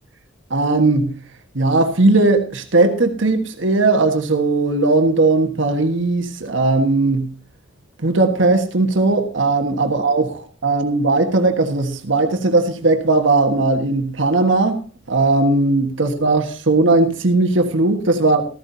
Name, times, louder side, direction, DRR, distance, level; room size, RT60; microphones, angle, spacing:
voice 1, 0.5-1.2 1.5-7.3 8.0-14.8 15.1-18.5, right 2 dB, 70° right, 1.4 m, -17 dB
14.5 x 14.0 x 2.7 m
head